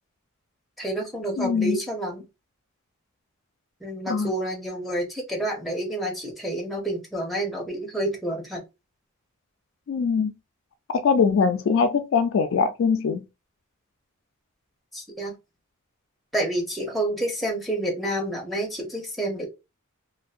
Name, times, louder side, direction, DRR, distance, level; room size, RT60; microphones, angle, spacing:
voice 1, 0.8-2.2 3.8-8.6 14.9-15.4 16.3-19.5, right 1 dB, ahead, 0.7 m, -29 dB
voice 2, 1.4-1.8 4.1-4.3 9.9-10.3 10.9-13.2, left 5 dB, 65° left, 0.3 m, -22 dB
2.6 x 2.1 x 2.4 m
head